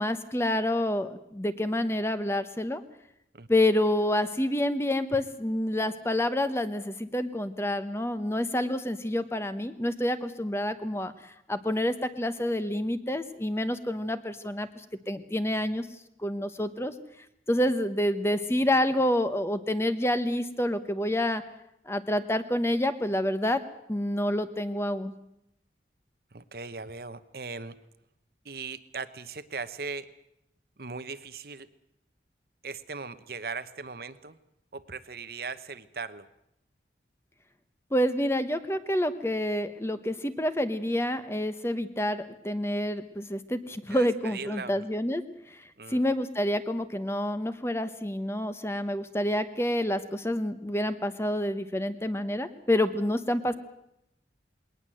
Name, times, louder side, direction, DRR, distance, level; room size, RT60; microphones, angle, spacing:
voice 1, 0.0-2.8 3.5-15.9 16.2-16.9 17.5-21.4 21.9-23.6 23.9-25.1 37.9-45.2 45.5-53.5, left 1 dB, 15° left, 11 dB, 1.0 m, -28 dB
voice 2, 26.3-27.7 28.4-30.1 30.8-31.7 32.6-34.4 34.7-36.2 43.9-44.8 45.8-46.0, right 4 dB, 55° right, 12 dB, 1.0 m, -39 dB
21.0 x 18.5 x 7.8 m, 0.81 s
head